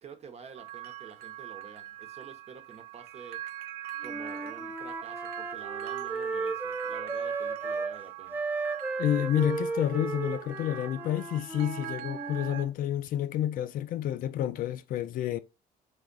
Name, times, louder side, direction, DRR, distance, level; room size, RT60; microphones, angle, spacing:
voice 1, 0.0-3.4 4.0-8.4, right 5 dB, 40° right, 0.8 m, -49 dB
sound 1, 0.5-12.6, right 14 dB, 75° right, 0.4 m, -41 dB
Wind instrument woodwind instrument, 4.0-7.9 8.3-12.7, right 3 dB, 10° right, 0.6 m, -35 dB
voice 2, 9.0-15.4, left 11 dB, 55° left, 0.4 m, -29 dB
3.5 x 3.4 x 3.8 m
cardioid pair, 105°, 17 cm